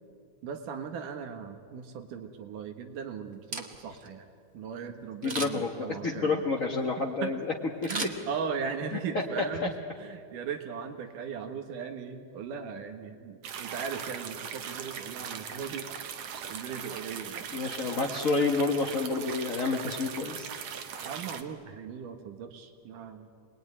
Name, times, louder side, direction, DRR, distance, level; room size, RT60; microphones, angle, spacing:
voice 1, 0.4-4.3 4.5-6.8 7.2-7.4 7.9-15.9 16.5-17.4 21.0-23.3, right 6 dB, 90° right, 6 dB, 3.2 m, -38 dB
Camera, 3.3-4.1 5.2-5.8 7.8-8.8 9.2-9.3, right 3 dB, 30° right, 1.6 m, -36 dB
voice 2, 5.2-7.5 7.8-8.1 17.5-20.5, left 3 dB, 45° left, -1 dB, 1.1 m, -29 dB
sound 1, 13.4-21.4, right 7 dB, 65° right, 2.5 m, -39 dB
28.0 x 21.0 x 9.8 m, 2.3 s
omnidirectional pair, 3.6 m